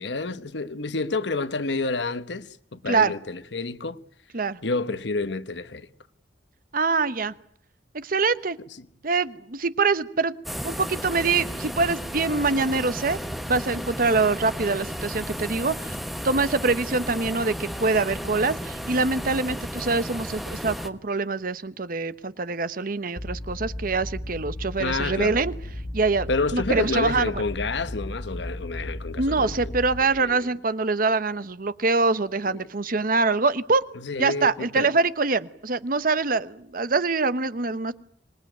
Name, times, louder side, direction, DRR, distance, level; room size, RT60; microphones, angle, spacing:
voice 1, 0.0-4.0 4.6-5.9 24.8-25.4 26.3-29.7 30.1-30.5 32.5-32.7 33.9-34.9, left 3 dB, 75° left, 1.1 m, -29 dB
voice 2, 6.7-7.3 7.9-8.6 9.0-10.3 10.6-13.2 13.5-15.9 16.2-25.5 25.9-27.4 29.2-33.8 34.2-37.9, right 3 dB, 50° right, 1.0 m, -24 dB
sound 1, 10.4-20.9, equal, ahead, 1.2 m, -33 dB
sound 2, 23.2-30.0, left 1 dB, 40° left, 3.4 m, -35 dB
25.5 x 20.0 x 9.3 m
head